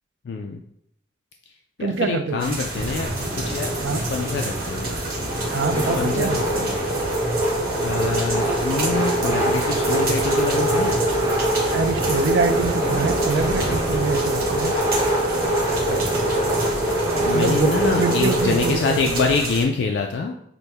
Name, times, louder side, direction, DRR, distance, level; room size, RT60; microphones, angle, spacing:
voice 1, 0.2-0.6 1.8-3.1 3.4-4.9 5.8-6.9 7.8-11.0 15.9-16.4 17.1-20.3, left 4 dB, 70° left, 3 dB, 0.3 m, -26 dB
voice 2, 1.8-2.6 3.8-4.1 5.5-6.4 11.7-14.7 17.3-19.3, right 4 dB, 85° right, 8 dB, 0.4 m, -25 dB
sound 1, 2.4-19.7, right 3 dB, 55° right, 1.0 m, -32 dB
sound 2, 2.7-19.4, right 1 dB, 20° right, 0.9 m, -23 dB
5.9 x 2.1 x 3.3 m, 0.76 s
head